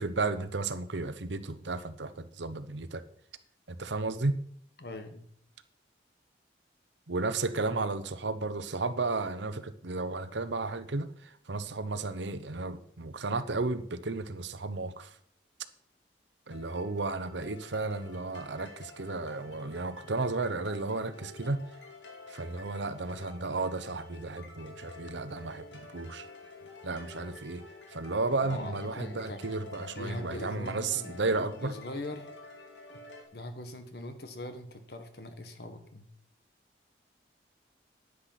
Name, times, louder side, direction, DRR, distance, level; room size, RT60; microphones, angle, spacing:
voice 1, 0.0-3.0 3.7-4.4 7.1-15.2 16.5-21.6 22.3-26.3 26.8-27.6 27.9-31.8, right 3 dB, 85° right, 12 dB, 0.9 m, -33 dB
voice 2, 4.8-5.3 28.4-29.4 29.9-32.3 33.3-36.1, left 1 dB, 60° left, 7 dB, 1.5 m, -41 dB
sound 1, 16.5-33.2, left 3 dB, 85° left, 2.5 m, -49 dB
10.0 x 9.9 x 5.9 m, 0.63 s
head